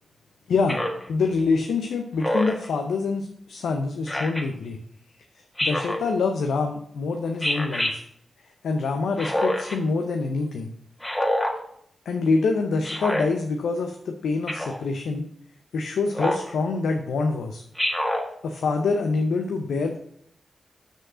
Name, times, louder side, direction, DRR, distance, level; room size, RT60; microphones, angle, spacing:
voice 1, 0.5-0.8 1.1-4.8 5.6-8.1 8.6-10.7 12.1-15.2 15.7-17.6 18.4-20.0, left 4 dB, 90° left, 4 dB, 0.6 m, -25 dB
Speech synthesizer, 0.7-1.1 2.2-2.7 4.1-4.4 5.6-6.0 7.4-7.9 9.2-9.8 11.0-11.6 12.8-13.3 14.5-14.8 16.1-16.5 17.8-18.3, left 1 dB, 15° left, 1.6 m, -26 dB
6.3 x 5.2 x 6.1 m, 0.69 s
cardioid pair, 45°, 0 cm